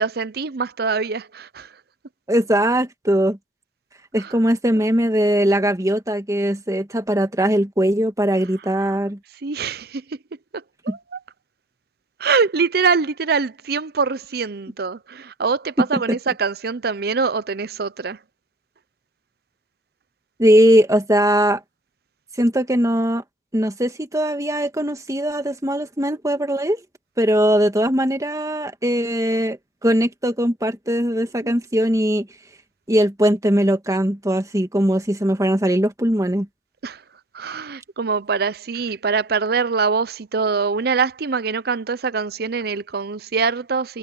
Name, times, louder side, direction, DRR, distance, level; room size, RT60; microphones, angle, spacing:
voice 1, 0.0-1.7 4.2-4.3 8.8-9.0 9.4-10.2 10.5-11.2 12.2-18.2 31.4-31.5 36.8-37.0 37.3-44.0, right 5 dB, 60° right, 0.6 m, -24 dB
voice 2, 2.3-3.4 4.1-9.2 10.9-11.0 15.8-16.2 20.4-21.6 22.4-23.2 23.5-26.8 27.2-32.3 32.9-36.5, equal, 20° right, 1.7 m, -20 dB
head